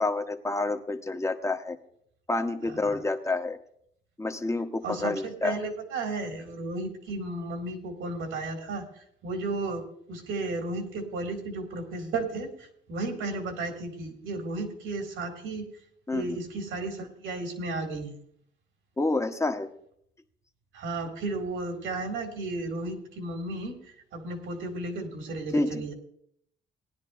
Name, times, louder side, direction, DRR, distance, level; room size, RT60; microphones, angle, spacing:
voice 1, 0.0-1.8 2.3-3.6 4.2-5.6 16.1-16.4 19.0-19.7 25.5-25.8, left 2 dB, 15° left, 7 dB, 1.0 m, -28 dB
voice 2, 2.6-3.0 4.8-15.7 16.1-18.2 20.7-23.8 24.1-25.9, right 2 dB, 85° right, 3 dB, 2.3 m, -34 dB
18.5 x 10.5 x 2.5 m, 0.68 s
cardioid pair, 90°, 20 cm